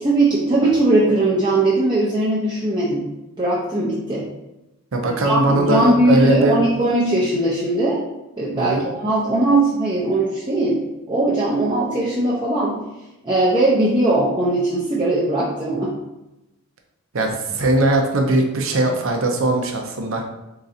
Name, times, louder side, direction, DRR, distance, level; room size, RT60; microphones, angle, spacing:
voice 1, 0.0-3.1 3.4-4.3 5.2-8.0 8.4-10.8 11.1-12.8 13.2-15.9, right 2 dB, 20° right, -7 dB, 0.5 m, -19 dB
voice 2, 4.9-6.6 8.5-8.8 17.1-20.2, right 2 dB, 65° right, 2 dB, 0.7 m, -20 dB
3.8 x 2.6 x 4.1 m, 0.96 s
head